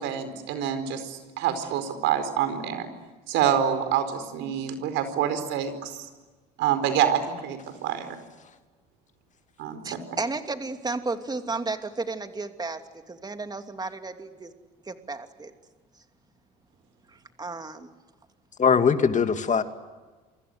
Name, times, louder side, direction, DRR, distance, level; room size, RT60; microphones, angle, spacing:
voice 1, 0.0-2.9 3.3-6.1 6.6-8.2 9.6-10.0, right 9 dB, 70° right, 10 dB, 4.6 m, -27 dB
voice 2, 9.8-12.8 13.1-14.5 14.9-15.5 17.4-17.9, right 3 dB, 20° right, 7 dB, 2.8 m, -33 dB
voice 3, 18.6-19.6, left 6 dB, 35° left, 8 dB, 2.3 m, -21 dB
28.0 x 25.0 x 8.1 m, 1.3 s
hypercardioid pair, 70°, 20 cm